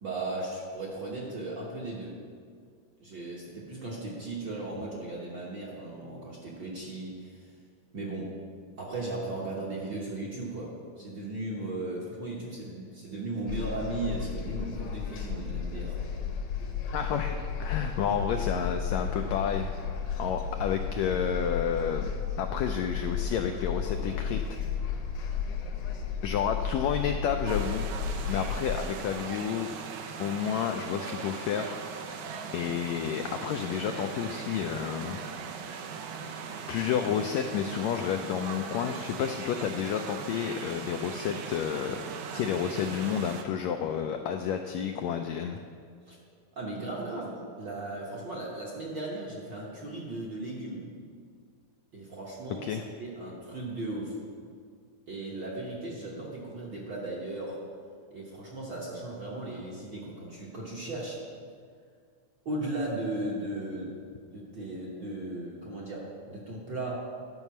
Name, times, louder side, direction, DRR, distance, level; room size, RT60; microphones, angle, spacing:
voice 1, 0.0-2.1 3.0-7.5 7.9-8.3 8.8-16.0 18.1-18.2 46.1-46.2 46.5-50.9 51.9-52.7 53.0-54.2 55.1-57.6 58.1-61.2 62.4-64.0 64.3-67.1, right 2 dB, 55° right, -5 dB, 1.4 m, -36 dB
sound 1, 13.5-28.8, left 6 dB, 65° left, 1.6 m, -33 dB
voice 2, 16.9-19.7 20.2-22.1 22.4-24.6 24.9-25.0 26.2-27.9 28.3-29.7 30.2-31.8 32.1-32.2 32.5-35.2 36.7-42.0 42.3-45.6 52.6-52.8, left 8 dB, 85° left, 5 dB, 1.6 m, -30 dB
sound 2, 27.5-43.4, right 6 dB, 75° right, 2.2 m, -39 dB
11.0 x 5.4 x 7.0 m, 2.1 s
omnidirectional pair, 3.6 m